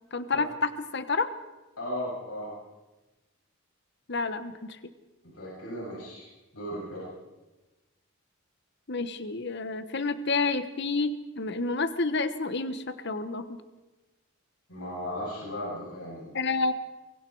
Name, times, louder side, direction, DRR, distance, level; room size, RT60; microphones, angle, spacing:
voice 1, 0.1-1.3 4.1-4.8 8.9-13.6 16.3-16.7, left 3 dB, 50° left, 11 dB, 1.1 m, -29 dB
voice 2, 1.8-2.5 5.3-6.3 6.5-7.1 14.7-16.3, equal, 85° left, -5 dB, 7.9 m, -36 dB
24.0 x 23.5 x 4.7 m, 1.1 s
head